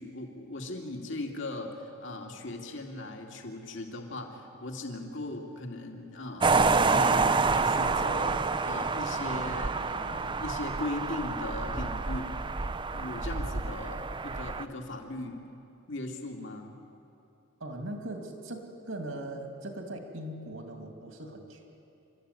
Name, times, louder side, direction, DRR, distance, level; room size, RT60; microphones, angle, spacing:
voice 1, 0.0-12.4 12.9-15.4 15.9-16.7, left 2 dB, 65° left, 2 dB, 2.5 m, -38 dB
sound 1, 6.4-14.6, right 4 dB, 25° right, 0.6 m, -28 dB
voice 2, 17.6-21.7, right 1 dB, 70° right, 4 dB, 2.7 m, -40 dB
28.5 x 13.5 x 9.7 m, 2.8 s
head